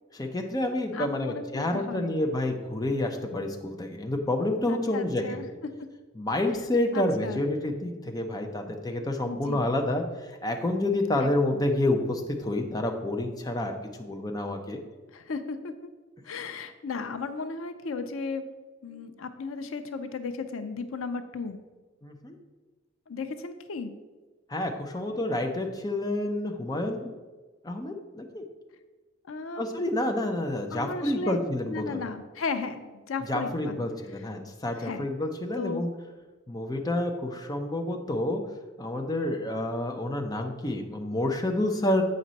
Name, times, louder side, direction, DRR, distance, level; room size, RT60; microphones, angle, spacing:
voice 1, 0.1-5.6 6.2-14.8 22.0-22.4 24.5-27.2 27.6-28.4 29.6-32.0 33.3-35.9 36.5-38.4 38.8-42.0, left 1 dB, 20° left, 3 dB, 0.6 m, -29 dB
voice 2, 0.9-2.1 4.7-5.4 6.9-7.4 9.3-9.7 11.2-11.6 15.1-15.9 16.2-18.4 18.8-21.6 23.1-23.9 29.2-30.0 30.7-31.4 31.7-33.8 34.1-34.3 34.8-35.1 35.5-35.9, left 4 dB, 90° left, 9 dB, 0.6 m, -35 dB
7.6 x 5.2 x 4.0 m, 1.3 s
head